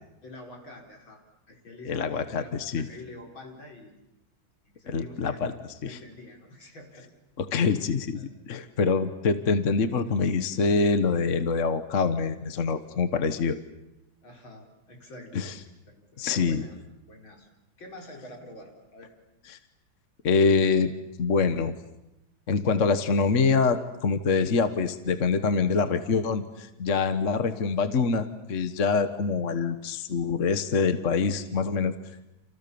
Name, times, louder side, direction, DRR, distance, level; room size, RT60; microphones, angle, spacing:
voice 1, 0.2-1.2 1.5-2.5 2.7-4.0 4.6-5.6 5.8-7.1 8.1-8.3 14.2-15.4 15.9-16.7 17.0-17.5 17.8-19.1, left 1 dB, 75° left, 1 dB, 5.5 m, -46 dB
voice 2, 1.9-2.9 4.9-5.5 5.8-6.0 7.4-13.6 15.3-15.5 16.2-16.6 19.5-19.6 20.2-20.9 21.2-21.7 22.5-31.9, left 4 dB, 40° left, 10 dB, 1.5 m, -25 dB
29.5 x 28.0 x 7.0 m, 0.90 s
omnidirectional pair, 2.2 m